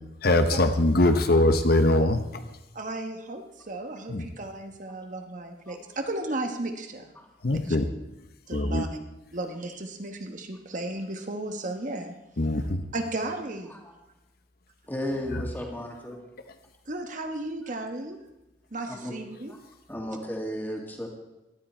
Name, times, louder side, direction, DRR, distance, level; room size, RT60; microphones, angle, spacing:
voice 1, 0.2-2.4 4.1-4.2 7.4-7.9 8.5-8.9 12.4-12.8 15.3-15.5, left 1 dB, 55° left, 8 dB, 0.9 m, -22 dB
voice 2, 2.7-7.1 7.5-7.6 8.5-8.9 9.3-12.1 12.9-13.8 16.9-18.2 18.7-19.5, right 2 dB, 45° right, 5 dB, 1.2 m, -34 dB
voice 3, 14.9-16.2 18.8-19.1 19.5-19.6 19.9-21.1, equal, 10° left, 0 dB, 2.3 m, -34 dB
17.5 x 12.0 x 4.4 m, 0.97 s
head